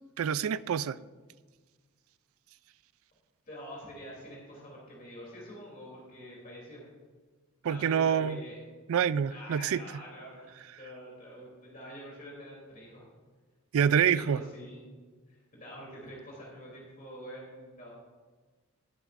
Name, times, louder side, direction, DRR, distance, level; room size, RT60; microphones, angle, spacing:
voice 1, 0.2-1.0 7.6-8.4 8.9-9.8 13.7-14.4, right 8 dB, 75° right, 0.3 m, -26 dB
voice 2, 3.5-6.8 7.6-8.6 9.3-13.1 14.0-14.8 15.3-17.9, equal, 40° left, 3.0 m, -46 dB
18.5 x 8.0 x 2.5 m
head